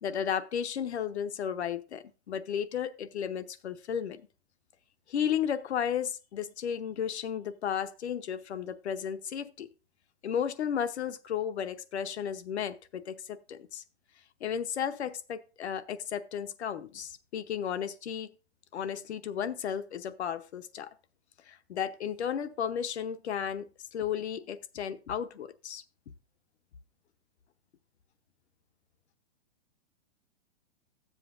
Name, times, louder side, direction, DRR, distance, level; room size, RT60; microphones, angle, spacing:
voice 1, 0.0-4.2 5.1-9.7 10.2-13.8 14.4-18.3 18.7-20.9 21.5-25.8, left 8 dB, 85° left, 0.9 m, -34 dB
13.0 x 7.6 x 2.5 m
hypercardioid pair, 160°, 32 cm